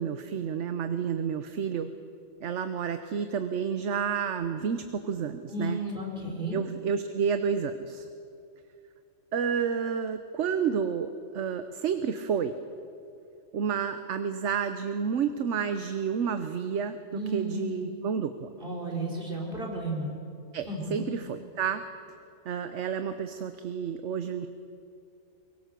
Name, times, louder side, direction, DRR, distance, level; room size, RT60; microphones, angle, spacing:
voice 1, 0.0-1.9 2.4-5.8 6.5-8.1 9.3-12.6 13.5-17.0 17.3-18.5 20.5-21.8 22.5-24.5, right 7 dB, 60° right, 9 dB, 1.1 m, -30 dB
voice 2, 5.5-6.6 17.1-17.8 18.6-20.1 20.6-21.0, right 1 dB, 40° right, 0 dB, 4.6 m, -33 dB
23.5 x 23.0 x 6.8 m, 2.5 s
omnidirectional pair, 1.5 m